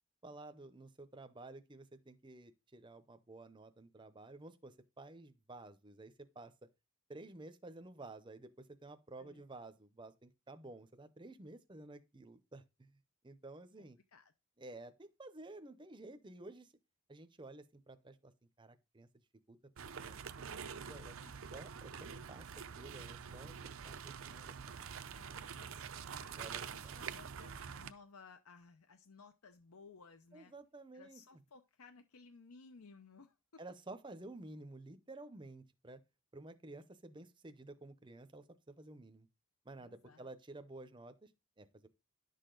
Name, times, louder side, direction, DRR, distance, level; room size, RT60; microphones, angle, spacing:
voice 1, 0.2-6.5 7.1-13.0 13.2-14.0 14.6-16.7 17.1-18.3 18.6-19.1 19.5-19.6 19.8-20.5 20.9-21.1 21.5-22.4 22.7-24.5 26.4-27.0 30.3-31.2 33.6-36.0 36.3-39.3 39.6-41.3 41.6-41.9, right 2 dB, 20° right, 0.6 m, -52 dB
voice 2, 13.8-14.3 20.8-21.3 25.1-30.5 30.9-33.6 39.8-40.3, left 4 dB, 75° left, 0.7 m, -59 dB
sound 1, 19.8-27.9, right 7 dB, 65° right, 0.6 m, -46 dB
11.0 x 6.7 x 3.8 m
head